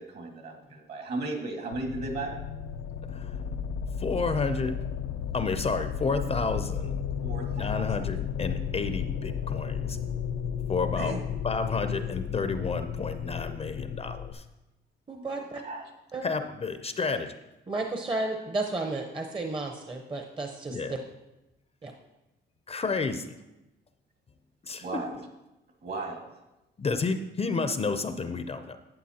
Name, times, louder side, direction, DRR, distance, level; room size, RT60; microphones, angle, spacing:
voice 1, 0.0-2.3 7.2-7.8 10.9-11.2 15.6-15.9 24.8-25.2 25.8-26.3, right 3 dB, 55° right, 2 dB, 1.9 m, -35 dB
sound 1, 1.7-14.3, left 8 dB, 90° left, 0.5 m, -33 dB
voice 2, 4.0-4.8 5.3-7.0 7.5-10.0 10.7-11.2 11.4-14.4 16.2-17.4 20.7-21.0 22.7-23.3 24.6-25.0 26.8-28.8, left 4 dB, 30° left, 9 dB, 0.5 m, -30 dB
voice 3, 15.1-15.6 16.1-16.2 17.7-21.0 21.8-21.9, right 2 dB, 25° right, 3 dB, 0.8 m, -32 dB
11.5 x 8.1 x 2.8 m, 0.98 s
cardioid pair, 90°, 20 cm